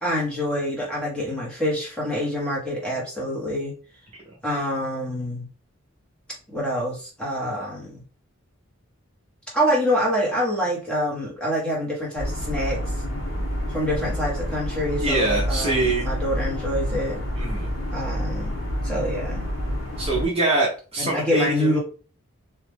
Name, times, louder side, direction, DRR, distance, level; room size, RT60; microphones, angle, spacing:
voice 1, 0.0-3.7 4.4-5.5 6.5-8.0 9.5-12.8 13.7-17.2 17.9-18.5 18.8-19.5 21.0-21.8, equal, 5° left, -5 dB, 1.1 m, -26 dB
sound 1, 12.2-20.3, equal, 65° left, 0.9 m, -28 dB
voice 2, 15.0-16.1 17.3-17.7 20.0-21.8, right 2 dB, 25° right, -4 dB, 0.7 m, -24 dB
2.9 x 2.4 x 3.4 m, 0.36 s
head